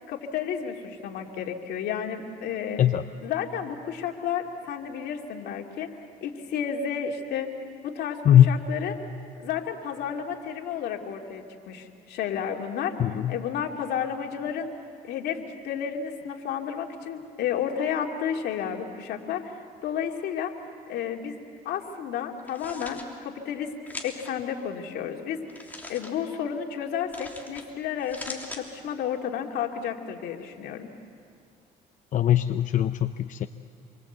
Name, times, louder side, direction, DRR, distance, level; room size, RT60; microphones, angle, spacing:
voice 1, 0.1-2.8 3.2-5.9 6.2-7.5 7.8-9.0 9.4-14.7 15.0-15.4 15.6-20.5 20.9-21.4 21.6-23.7 24.0-25.6 25.9-30.9, left 8 dB, 75° left, 2 dB, 2.6 m, -32 dB
voice 2, 8.2-8.6 13.0-13.3 32.1-33.5, left 11 dB, 50° left, 9 dB, 0.7 m, -20 dB
sound 1, 22.4-23.0 23.9-24.3 25.5-26.1 27.1-27.6 28.0-28.6, left 2 dB, 10° left, 3.3 m, -40 dB
27.5 x 24.0 x 8.1 m, 2.4 s
cardioid pair, 110°, 17 cm